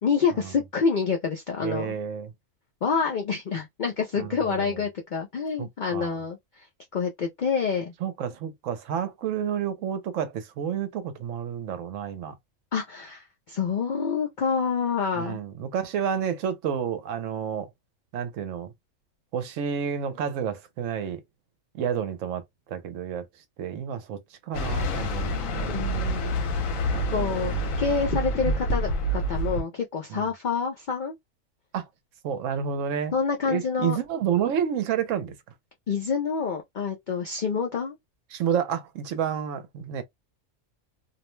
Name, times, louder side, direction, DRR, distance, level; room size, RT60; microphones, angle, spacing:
voice 1, 0.0-1.9 2.8-6.4 6.9-7.9 12.7-15.4 25.7-26.4 27.1-31.2 33.1-34.0 35.9-38.0, left 5 dB, 90° left, 0.4 m, -27 dB
voice 2, 1.6-2.3 4.2-4.8 5.6-6.2 8.0-12.3 15.2-17.7 18.1-18.7 19.3-21.2 21.7-22.4 22.7-23.3 23.6-26.1 26.9-27.5 30.1-30.3 31.7-31.9 32.2-33.1 33.5-35.3 38.3-40.0, right 8 dB, 70° right, 0.9 m, -30 dB
sound 1, 24.5-29.6, equal, 70° left, 1.1 m, -27 dB
2.5 x 2.1 x 3.0 m
omnidirectional pair, 1.5 m